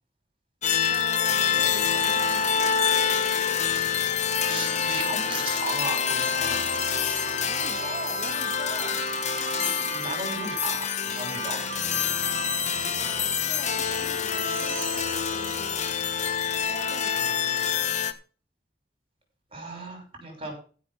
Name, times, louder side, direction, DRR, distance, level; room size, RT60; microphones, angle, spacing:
sound 1, 0.6-18.1, left 7 dB, 40° left, 1.2 m, -26 dB
voice 1, 0.9-2.8 7.5-9.1 13.0-16.0 16.7-17.4, left 1 dB, 25° left, -2 dB, 2.5 m, -43 dB
sound 2, 2.0-16.6, right 7 dB, 55° right, 1.0 m, -40 dB
voice 2, 4.5-6.6 9.5-11.6 19.5-20.5, right 2 dB, 35° right, 3 dB, 6.3 m, -36 dB
14.5 x 6.2 x 5.9 m, 0.38 s
head